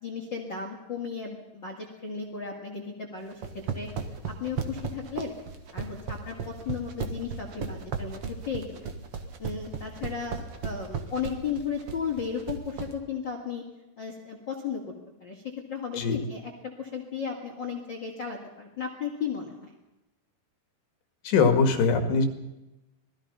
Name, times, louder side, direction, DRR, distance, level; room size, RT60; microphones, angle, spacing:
voice 1, 0.0-3.9 4.3-5.3 5.7-8.9 9.4-13.6 14.0-14.9 15.2-19.7, left 6 dB, 35° left, 1 dB, 2.3 m, -35 dB
sound 1, 3.3-12.9, right 6 dB, 50° right, 1.9 m, -34 dB
voice 2, 21.2-22.3, left 4 dB, 85° left, 7 dB, 4.4 m, -22 dB
27.0 x 19.5 x 5.6 m, 0.96 s
omnidirectional pair, 4.7 m